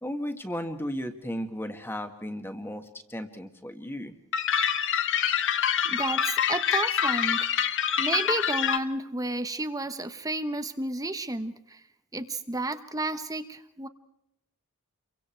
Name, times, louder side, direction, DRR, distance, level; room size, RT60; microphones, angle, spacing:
voice 1, 0.0-4.1, equal, 10° left, 7 dB, 1.8 m, -35 dB
sound 1, 4.3-8.8, left 8 dB, 60° left, 1.2 m, -26 dB
voice 2, 5.8-7.5 8.0-11.8 12.1-13.9, right 2 dB, 15° right, 9 dB, 1.1 m, -31 dB
29.5 x 24.0 x 4.6 m, 0.80 s
head